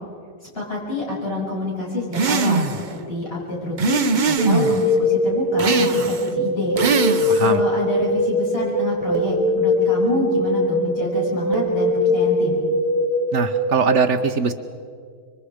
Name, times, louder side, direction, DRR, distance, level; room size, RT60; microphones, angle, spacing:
voice 1, 0.5-6.8 7.4-12.6, left 2 dB, 45° left, -5 dB, 7.6 m, -27 dB
sound 1, 2.1-2.9 3.8-4.8 5.6-6.3 6.8-7.6, right 5 dB, 40° right, 0.8 m, -21 dB
sound 2, 4.4-13.9, left 1 dB, 20° left, 2.8 m, -21 dB
voice 2, 7.3-7.6 13.3-14.5, right 6 dB, 65° right, 9 dB, 1.1 m, -21 dB
26.5 x 24.0 x 5.0 m, 2.1 s
omnidirectional pair, 1.4 m